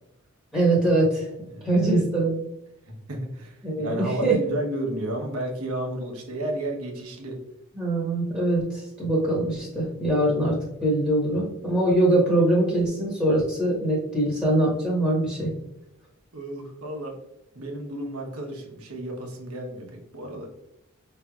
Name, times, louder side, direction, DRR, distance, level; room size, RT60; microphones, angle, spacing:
voice 1, 0.5-1.3 1.6-2.3 3.6-4.4 7.8-15.5, right 1 dB, 5° left, -6 dB, 1.2 m, -23 dB
voice 2, 1.5-2.0 2.8-7.4 16.3-17.2 17.5-20.5, right 1 dB, 85° right, 1 dB, 1.1 m, -32 dB
5.5 x 3.3 x 2.4 m, 0.86 s
head